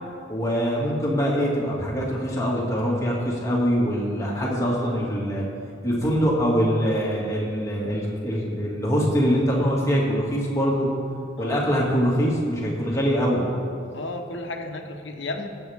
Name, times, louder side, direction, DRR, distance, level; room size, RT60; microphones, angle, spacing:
voice 1, 0.3-5.4 5.8-10.9 11.4-13.4, equal, 20° left, -4 dB, 2.3 m, -23 dB
voice 2, 11.4-11.7 13.9-15.5, left 2 dB, 80° left, 4 dB, 1.1 m, -33 dB
21.0 x 8.0 x 3.6 m, 2.5 s
head